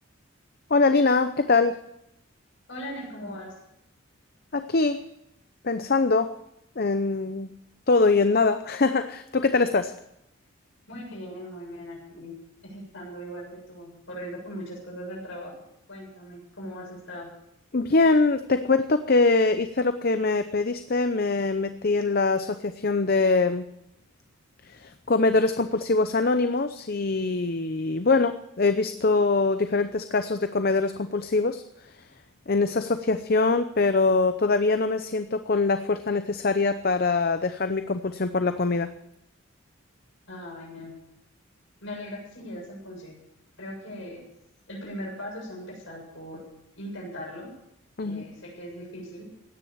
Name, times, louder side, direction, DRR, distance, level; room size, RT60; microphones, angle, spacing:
voice 1, 0.7-1.8 4.5-5.0 5.6-6.3 6.8-7.5 7.9-9.9 17.7-23.7 24.7-31.6 32.5-38.9 48.0-48.2, left 3 dB, 45° left, 10 dB, 0.7 m, -23 dB
voice 2, 2.7-3.5 10.9-15.6 15.9-17.4 40.3-41.0 41.8-43.2 43.6-44.3 44.7-46.5 46.8-47.5 48.0-49.3, equal, 60° left, -1 dB, 7.2 m, -39 dB
16.5 x 10.0 x 7.2 m, 0.79 s
head